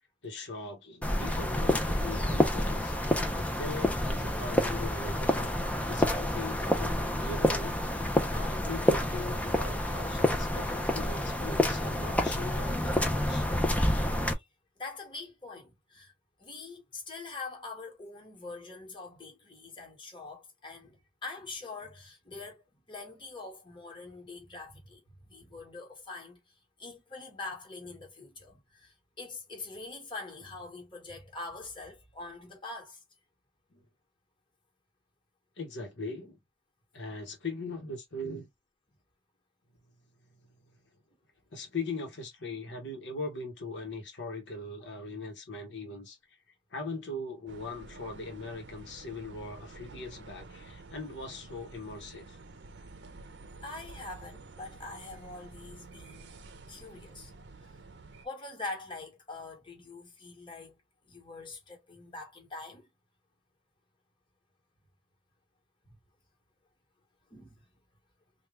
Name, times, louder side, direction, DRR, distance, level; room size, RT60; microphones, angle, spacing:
voice 1, 0.2-13.5 33.7-33.8 35.6-36.4 36.9-38.5 41.5-46.4 46.7-52.4, left 2 dB, 65° left, 1.0 m, -40 dB
sound 1, 1.0-14.3, left 1 dB, 5° left, 0.5 m, -28 dB
voice 2, 14.8-16.1 16.4-26.4 26.8-33.0 53.6-56.4 56.7-57.3 57.6-57.7 58.2-60.8 61.1-62.9 65.8-65.9 67.3-67.6, left 3 dB, 25° left, 1.3 m, -44 dB
sound 2, 47.5-58.3, right 3 dB, 60° right, 0.6 m, -50 dB
3.4 x 2.3 x 3.1 m
head